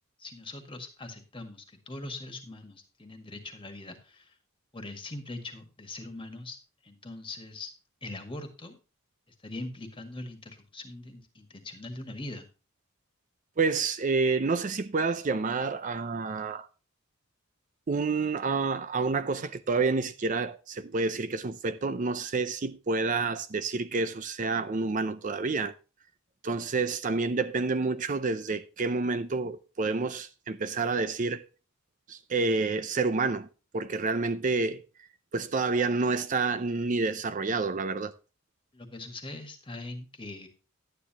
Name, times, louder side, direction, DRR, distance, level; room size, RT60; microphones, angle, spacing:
voice 1, 0.2-4.3 4.7-6.6 6.8-7.7 8.0-8.8 9.4-12.5 38.7-40.5, left 2 dB, 25° left, 1.8 m, -41 dB
voice 2, 13.6-16.7 17.9-25.7 26.4-31.4 32.1-33.5 33.7-34.8 35.3-38.1, right 4 dB, 35° right, 0.5 m, -29 dB
11.5 x 9.6 x 2.9 m
head